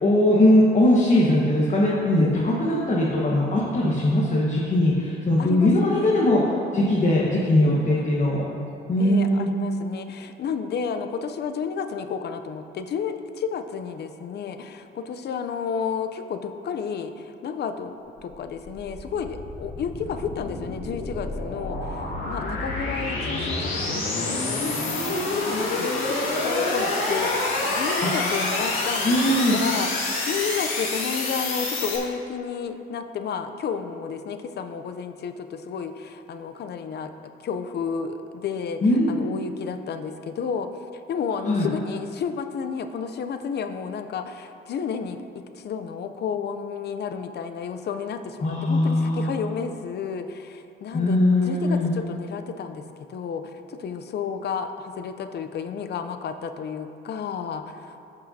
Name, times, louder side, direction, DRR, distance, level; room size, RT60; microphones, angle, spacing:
voice 1, 0.0-6.4 6.7-8.4 8.9-9.5 28.0-28.1 29.0-29.6 38.8-39.1 41.5-41.7 48.4-49.3 50.9-51.9, left 1 dB, 40° left, -5 dB, 1.3 m, -20 dB
voice 2, 5.4-6.3 6.8-7.2 7.7-8.2 9.0-17.9 18.2-37.1 37.4-40.7 41.1-58.0, left 6 dB, 55° left, 8 dB, 0.6 m, -32 dB
sound 1, 18.2-32.0, left 2 dB, 75° left, 1.8 m, -27 dB
15.0 x 5.4 x 2.8 m, 2.7 s
cardioid pair, 90°, 20 cm